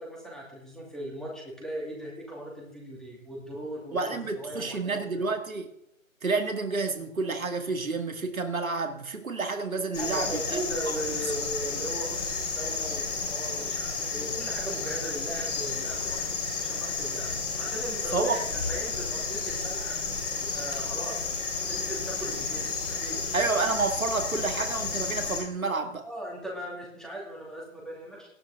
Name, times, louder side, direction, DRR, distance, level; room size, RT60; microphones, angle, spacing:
voice 1, 0.0-4.0 4.3-5.2 10.0-16.2 16.6-17.3 17.6-20.0 20.4-21.3 21.7-23.4 26.1-28.3, right 1 dB, ahead, 2.4 m, -38 dB
voice 2, 3.9-5.7 6.2-10.6 18.1-18.4 23.3-26.1, right 3 dB, 80° right, 2.0 m, -29 dB
sound 1, 9.9-25.4, left 4 dB, 20° left, 4.4 m, -32 dB
18.0 x 10.0 x 3.7 m
figure-of-eight pair, 150°, 41 cm